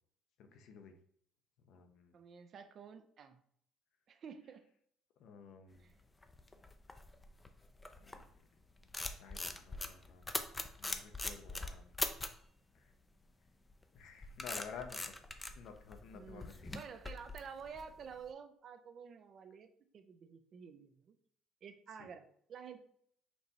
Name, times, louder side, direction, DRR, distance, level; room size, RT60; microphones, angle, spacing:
voice 1, 0.4-0.9 1.7-2.2 5.2-5.9 8.0-8.2 9.0-10.2 10.8-12.0 12.7-12.9 13.9-15.1 15.6-16.7 22.0-22.1, left 6 dB, 65° left, 6 dB, 0.7 m, -52 dB
voice 2, 2.1-3.4 4.1-4.7 5.8-5.9 16.1-21.2 21.6-22.8, right 6 dB, 45° right, 8 dB, 0.5 m, -51 dB
sound 1, 6.0-8.4 8.7-12.5 13.7-18.2, left 2 dB, 15° left, 0.4 m, -42 dB
4.6 x 2.6 x 4.0 m, 0.65 s
cardioid pair, 125°, 0 cm